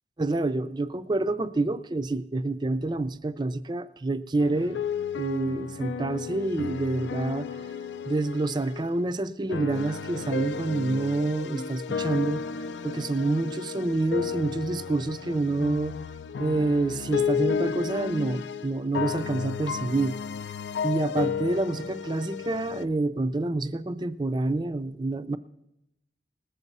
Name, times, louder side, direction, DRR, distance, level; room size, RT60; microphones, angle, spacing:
voice 1, 0.2-4.8 5.2-7.5 8.1-12.4 12.8-16.0 16.4-20.2 20.8-25.4, right 2 dB, 25° right, 13 dB, 0.4 m, -27 dB
sound 1, 4.4-8.9 9.5-22.8, left 6 dB, 75° left, 0.4 m, -33 dB
19.0 x 7.2 x 5.4 m, 0.89 s
head